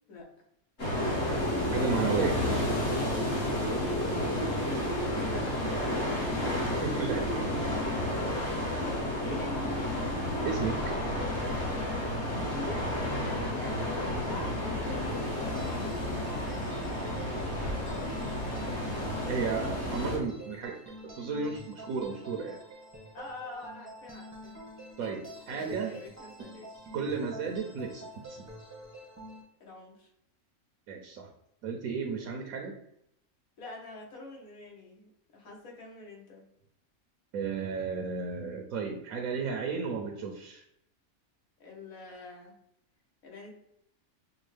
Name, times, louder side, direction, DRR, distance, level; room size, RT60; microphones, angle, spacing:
sound 1, 0.8-20.2, left 1 dB, 50° left, 1.9 m, -31 dB
voice 1, 1.7-2.4 6.8-7.2 10.4-10.8 19.3-22.6 25.0-26.0 26.9-28.4 30.9-31.3 31.6-32.8 37.3-40.6, right 5 dB, 75° right, 3 dB, 1.0 m, -33 dB
voice 2, 5.1-5.8 8.5-9.7 12.5-16.8 17.4-20.0 23.1-24.7 25.5-26.9 29.6-30.1 33.6-36.4 41.6-42.6 43.2-43.5, left 2 dB, 70° left, -1 dB, 1.6 m, -46 dB
sound 2, 14.6-29.4, equal, 15° right, 0.7 m, -47 dB
6.0 x 2.3 x 3.2 m, 0.76 s
omnidirectional pair, 1.5 m